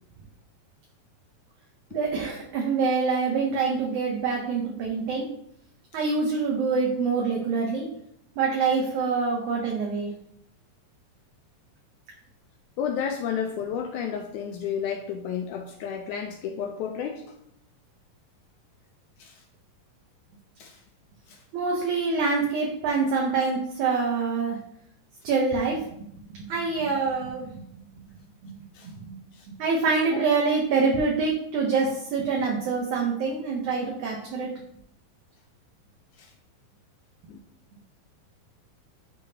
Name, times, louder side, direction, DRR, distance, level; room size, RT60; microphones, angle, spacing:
voice 1, 1.9-5.3 5.9-7.9 8.4-10.1 21.5-24.6 25.2-27.7 28.4-28.6 28.8-29.2 29.5-34.5, right 4 dB, 70° right, -2 dB, 2.0 m, -26 dB
voice 2, 12.8-17.2 19.2-19.4 20.6-20.8 21.3-21.4 28.7-28.9 29.3-29.4 30.1-30.2 36.2-36.3 37.3-37.4, left 7 dB, 80° left, 3 dB, 1.8 m, -32 dB
10.0 x 3.5 x 2.8 m, 0.72 s
omnidirectional pair, 4.0 m